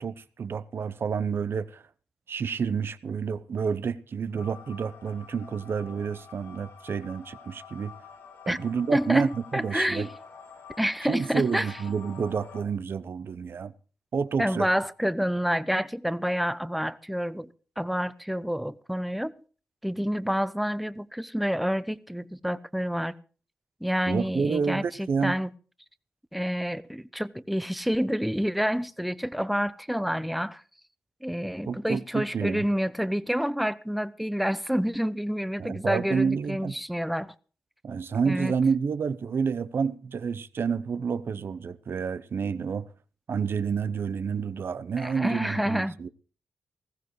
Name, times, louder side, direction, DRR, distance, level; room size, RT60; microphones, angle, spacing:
voice 1, 0.0-1.8 2.3-7.9 8.5-10.1 11.1-13.7 14.1-14.7 24.1-25.4 31.7-32.7 35.6-36.7 37.8-42.9 43.3-46.1, right 6 dB, 60° right, 0.7 m, -29 dB
sound 1, 4.4-12.6, left 6 dB, 85° left, 2.4 m, -48 dB
voice 2, 8.9-10.1 10.8-11.8 14.4-17.5 17.8-19.3 19.8-23.1 23.8-25.5 26.3-30.6 31.2-37.3 38.3-38.5 45.0-46.0, equal, ahead, 0.7 m, -28 dB
19.5 x 15.0 x 3.2 m
cardioid pair, 55°, 4 cm